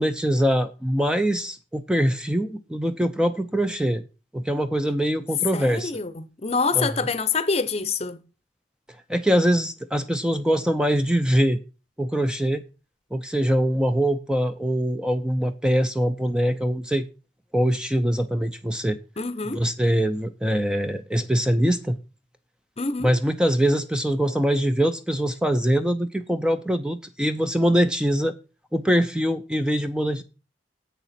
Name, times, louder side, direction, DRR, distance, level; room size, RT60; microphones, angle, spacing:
voice 1, 0.0-4.0 4.3-5.9 6.8-6.9 9.1-11.6 12.0-12.6 13.1-17.1 17.5-19.0 19.5-22.0 23.0-28.4 28.7-30.2, equal, 5° right, 0.5 m, -23 dB
voice 2, 5.5-8.2 19.2-19.6 22.8-23.1, left 4 dB, 30° left, 0.8 m, -26 dB
8.1 x 6.8 x 5.8 m
head